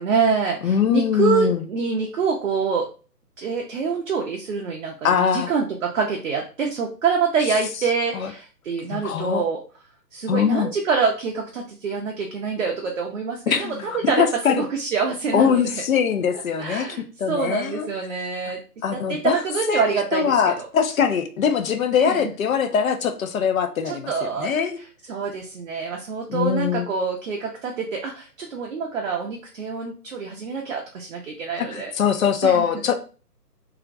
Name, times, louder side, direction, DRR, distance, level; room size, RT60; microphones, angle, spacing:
voice 1, 0.0-2.9 3.4-9.6 10.1-14.3 14.6-15.8 16.6-18.6 19.1-20.3 22.0-22.3 23.9-24.5 25.1-31.9 32.4-32.7, right 5 dB, 55° right, 1 dB, 0.5 m, -26 dB
voice 2, 0.6-1.6 5.0-5.5 8.1-8.3 8.9-9.4 10.3-10.7 13.5-14.7 15.3-16.9 17.2-17.9 18.8-19.4 19.7-19.8 20.1-24.8 26.3-26.9 31.6-33.0, left 7 dB, 60° left, 8 dB, 0.5 m, -22 dB
2.4 x 2.1 x 2.5 m, 0.37 s
figure-of-eight pair, 140°, 48 cm